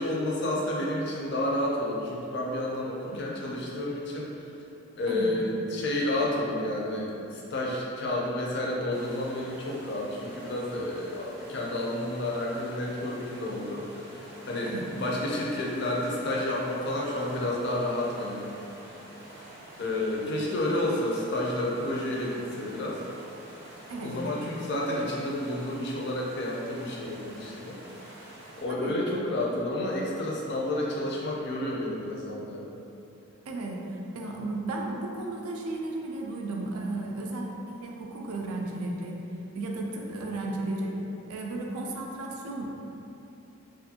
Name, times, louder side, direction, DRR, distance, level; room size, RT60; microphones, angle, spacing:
voice 1, 0.0-4.3 5.0-18.5 19.8-23.0 24.0-27.8 28.6-32.7, left 1 dB, 50° left, -3 dB, 0.4 m, -30 dB
sound 1, 8.9-28.6, right 1 dB, 25° right, 0.6 m, -47 dB
voice 2, 23.9-24.2 28.7-29.0 33.5-39.2 39.5-41.0 41.3-42.7, right 2 dB, 85° right, 0 dB, 0.4 m, -34 dB
2.5 x 2.4 x 2.7 m, 2.8 s
head